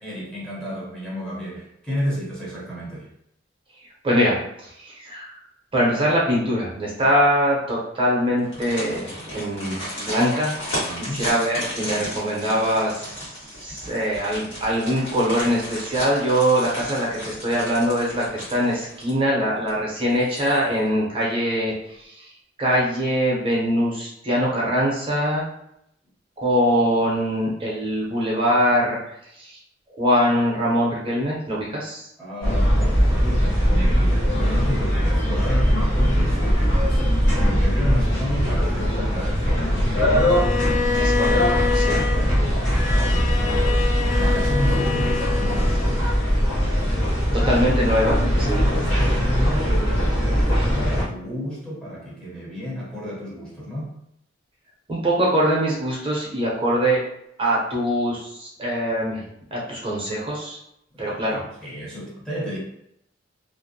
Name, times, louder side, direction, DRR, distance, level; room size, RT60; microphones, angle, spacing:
voice 1, 0.0-3.1 10.8-11.2 32.2-40.4 41.8-43.8 44.2-45.8 48.7-54.0 60.9-62.6, equal, 5° left, -6 dB, 0.7 m, -32 dB
voice 2, 4.0-5.3 5.7-10.5 11.0-22.3 22.6-25.5 26.4-29.0 29.3-29.6 29.9-32.1 41.0-42.0 47.3-48.7 54.9-57.0 57.4-59.2 59.5-60.6 61.0-61.4, equal, 30° right, -5 dB, 0.6 m, -23 dB
sound 1, 8.4-19.3 19.7-19.8 20.2-20.9 21.2-21.3, equal, 85° left, 1.3 m, -34 dB
sound 2, 32.4-51.1, equal, 70° left, 0.8 m, -20 dB
Bowed string instrument, 40.1-46.3, left 5 dB, 40° left, 0.4 m, -27 dB
2.5 x 2.0 x 2.6 m, 0.77 s
head